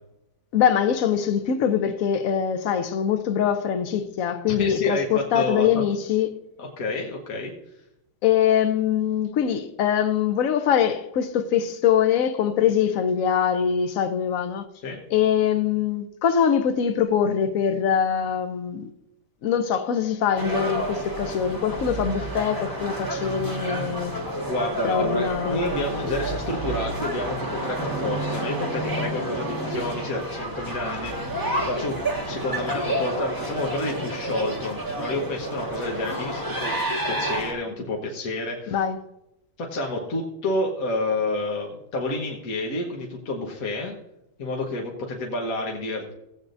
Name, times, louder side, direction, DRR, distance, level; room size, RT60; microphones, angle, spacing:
voice 1, 0.5-6.4 8.2-14.6 15.1-18.9 19.4-24.1 24.8-25.6 38.7-39.0, left 8 dB, 75° left, 0.7 m, -23 dB
voice 2, 4.5-5.8 6.6-7.5 14.8-15.0 24.4-32.0 32.3-36.7 37.1-38.8 39.6-44.0 44.4-46.1, left 2 dB, 45° left, 1.4 m, -29 dB
sound 1, 20.4-37.5, right 1 dB, 10° right, 1.2 m, -30 dB
17.0 x 8.2 x 2.6 m
omnidirectional pair, 2.3 m